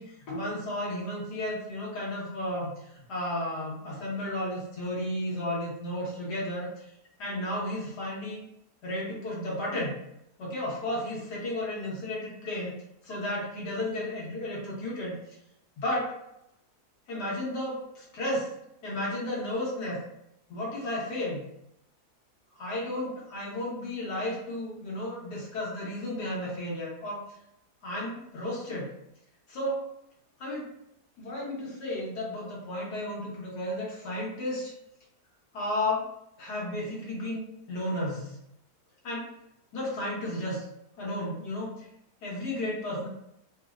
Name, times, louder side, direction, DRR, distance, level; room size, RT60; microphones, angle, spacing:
voice 1, 0.0-2.7 3.1-6.9 7.2-8.4 8.8-10.0 10.4-12.7 13.0-15.1 15.8-16.2 17.1-18.5 18.8-20.0 20.5-21.5 22.5-27.2 27.8-28.9 29.5-29.8 30.4-30.7 31.2-34.7 35.5-36.1 36.4-37.4 37.7-38.4 39.0-39.3 39.7-40.6 41.0-41.8 42.2-43.1, left 1 dB, 80° left, -5 dB, 1.7 m, -33 dB
3.9 x 2.1 x 2.4 m, 0.79 s
omnidirectional pair, 1.7 m